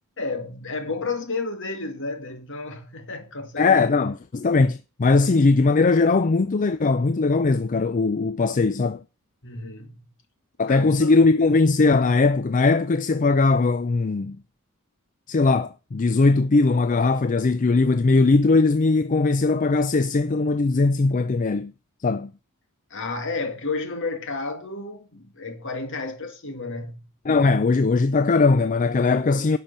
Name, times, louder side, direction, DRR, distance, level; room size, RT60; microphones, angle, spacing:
voice 1, 0.2-3.8 9.4-10.1 10.7-11.1 22.9-27.0, left 3 dB, 55° left, 2.3 m, -31 dB
voice 2, 3.6-9.0 10.6-14.4 15.3-21.7 22.0-22.3 27.3-29.6, left 3 dB, 35° left, 0.4 m, -20 dB
10.5 x 5.7 x 7.3 m
head